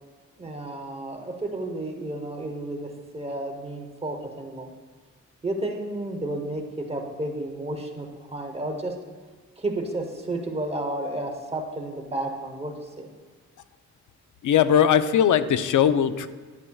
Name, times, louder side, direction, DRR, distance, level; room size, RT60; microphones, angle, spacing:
voice 1, 0.4-4.7 5.4-8.9 9.6-13.1, right 1 dB, 20° right, 3 dB, 0.9 m, -32 dB
voice 2, 14.4-16.3, left 9 dB, 90° left, 12 dB, 0.5 m, -19 dB
12.0 x 8.3 x 2.3 m, 1.5 s
wide cardioid pair, 165°, 30 cm